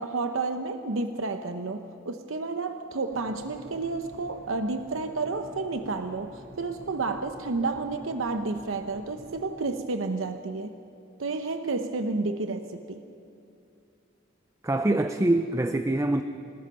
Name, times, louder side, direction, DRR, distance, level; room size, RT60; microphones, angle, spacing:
voice 1, 0.0-10.7 11.2-13.0, right 3 dB, 85° right, 8 dB, 0.9 m, -31 dB
sound 1, 3.1-9.5, equal, 60° right, 2.5 m, -49 dB
voice 2, 14.6-16.2, right 1 dB, 15° right, 8 dB, 0.5 m, -24 dB
26.0 x 19.0 x 5.5 m, 2.6 s
head